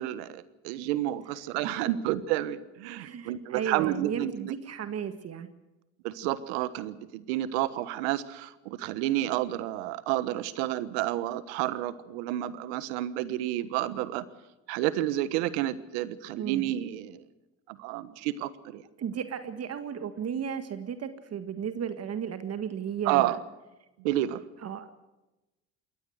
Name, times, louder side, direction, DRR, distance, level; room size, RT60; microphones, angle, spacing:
voice 1, 0.0-4.5 6.0-14.2 14.7-17.2 17.7-18.8 23.0-23.4 24.0-24.4, right 14 dB, 85° right, 16 dB, 1.3 m, -30 dB
voice 2, 3.0-5.5 16.3-16.6 19.0-23.4 24.6-24.9, right 8 dB, 50° right, 10 dB, 1.8 m, -34 dB
21.5 x 17.5 x 8.0 m, 1.0 s
supercardioid pair, 75°, 32 cm